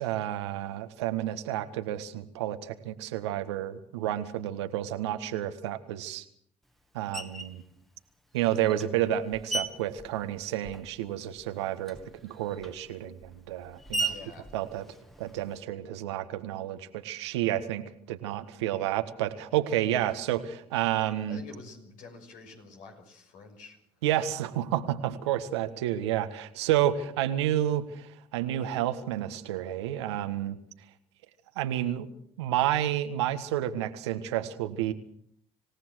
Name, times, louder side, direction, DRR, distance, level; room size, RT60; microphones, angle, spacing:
voice 1, 0.0-6.2 6.9-7.6 8.3-12.0 12.2-14.1 14.5-14.8 15.2-21.4 24.0-30.6 31.5-32.1 32.4-34.9, right 12 dB, 85° right, 9 dB, 1.6 m, -30 dB
Screech, 7.1-7.6 8.4-11.1 11.3-15.6, right 3 dB, ahead, 2.1 m, -38 dB
voice 2, 14.0-14.9 21.3-23.8, left 4 dB, 70° left, 3 dB, 6.3 m, -48 dB
26.5 x 17.5 x 6.4 m, 0.63 s
hypercardioid pair, 60°, 14 cm